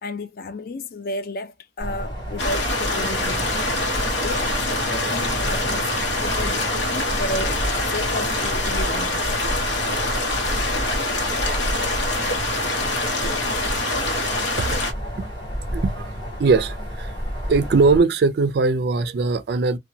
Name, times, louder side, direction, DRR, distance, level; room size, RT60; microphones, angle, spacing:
voice 1, 0.0-3.6 4.2-9.3, left 2 dB, 55° left, 0.4 m, -33 dB
sound 1, 1.8-18.0, equal, 25° left, 1.2 m, -30 dB
sound 2, 2.4-14.9, left 2 dB, 85° left, 0.9 m, -25 dB
sound 3, 2.9-9.2, right 1 dB, 15° right, 0.7 m, -40 dB
voice 2, 15.7-16.1 16.4-17.1 17.5-19.8, right 4 dB, 60° right, 0.3 m, -20 dB
2.7 x 2.2 x 2.6 m
head